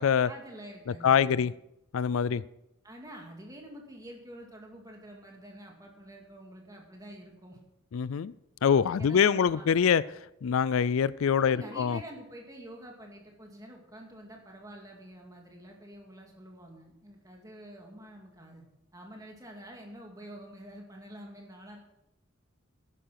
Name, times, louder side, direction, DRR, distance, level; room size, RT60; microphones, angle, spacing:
voice 1, 0.2-1.5 2.8-7.6 9.0-9.6 11.4-18.6 18.9-21.8, right 1 dB, 15° right, 2.4 m, -47 dB
voice 2, 1.0-1.5 1.9-2.4 7.9-8.3 8.6-10.0 10.4-12.0, left 7 dB, 75° left, 0.4 m, -24 dB
11.5 x 10.5 x 5.9 m
head